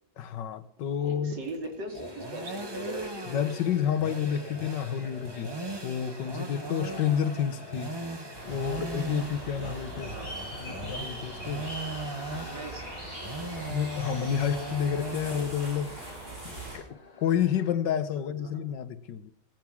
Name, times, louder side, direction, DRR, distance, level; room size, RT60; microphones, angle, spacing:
voice 1, 0.2-1.4 3.3-5.5 5.8-8.0 8.4-11.7 13.7-16.0 16.4-19.3, left 9 dB, 85° left, 1.7 m, -30 dB
voice 2, 1.0-3.0 10.0-10.6 12.3-12.8 18.4-18.6, right 1 dB, 85° right, 3.5 m, -40 dB
sound 1, 1.4-15.4, right 2 dB, 15° right, 1.1 m, -39 dB
sound 2, 1.9-17.7, left 3 dB, 25° left, 1.4 m, -47 dB
sound 3, 8.3-16.8, right 2 dB, 30° right, 7.5 m, -41 dB
18.0 x 10.5 x 6.2 m
omnidirectional pair, 1.9 m